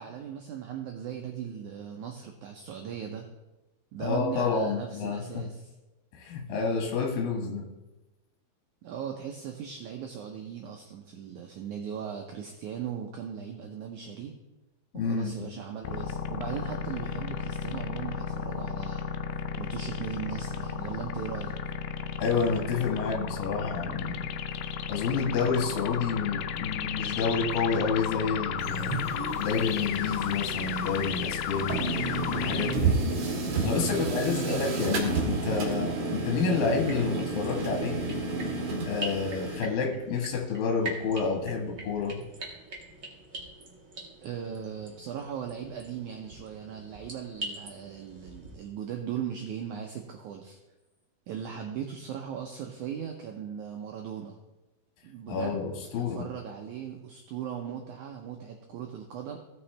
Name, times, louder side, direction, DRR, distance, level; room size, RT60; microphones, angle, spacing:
voice 1, 0.0-3.3 3.9-5.7 8.8-14.3 14.9-19.0 19.6-21.6 33.9-34.7 44.2-50.6 51.3-54.4 55.0-59.4, right 8 dB, 90° right, 3 dB, 1.7 m, -38 dB
voice 2, 4.0-5.4 6.1-7.7 14.9-15.5 22.2-24.3 24.9-29.0 29.4-31.8 32.3-33.0 33.6-38.0 38.9-42.2 55.3-56.2, left 5 dB, 70° left, 2 dB, 3.1 m, -29 dB
sound 1, 15.8-32.8, left 7 dB, 90° left, 2.6 m, -34 dB
sound 2, 28.6-39.6, right 3 dB, 55° right, 2.0 m, -31 dB
sound 3, 36.8-48.5, right 2 dB, 40° right, 1.2 m, -43 dB
17.0 x 6.0 x 3.3 m, 1.0 s
omnidirectional pair, 4.5 m